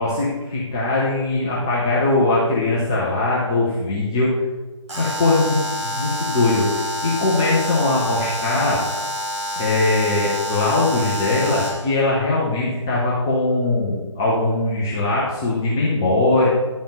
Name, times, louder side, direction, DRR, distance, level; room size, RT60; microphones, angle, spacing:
voice 1, 0.0-4.4 5.0-5.6 5.8-6.7 7.0-8.8 9.6-16.5, left 2 dB, 5° left, -7 dB, 0.3 m, -20 dB
Alarm, 4.9-11.9, equal, 65° right, 1.6 m, -27 dB
10.0 x 5.1 x 3.8 m, 1.2 s
figure-of-eight pair, 150°, 16 cm